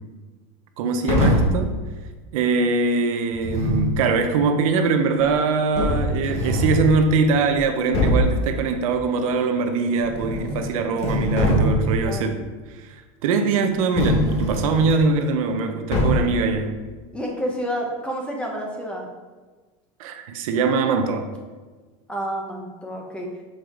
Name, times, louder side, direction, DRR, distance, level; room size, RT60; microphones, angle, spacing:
voice 1, 0.8-1.7 2.3-12.5 13.2-16.7 20.0-21.3, right 4 dB, 90° right, 6 dB, 0.8 m, -22 dB
sound 1, 1.1-1.7 3.3-4.0 5.2-5.3 5.7-7.0 7.5-7.6 7.9-8.4 10.0-10.6 10.9-12.0 14.0-14.9 15.9-16.4, left 1 dB, 35° left, 1.4 m, -22 dB
voice 2, 12.0-12.4 17.1-19.1 22.1-23.3, equal, 5° left, 0 dB, 1.0 m, -29 dB
6.6 x 4.8 x 3.8 m, 1.3 s
supercardioid pair, 150°, 17 cm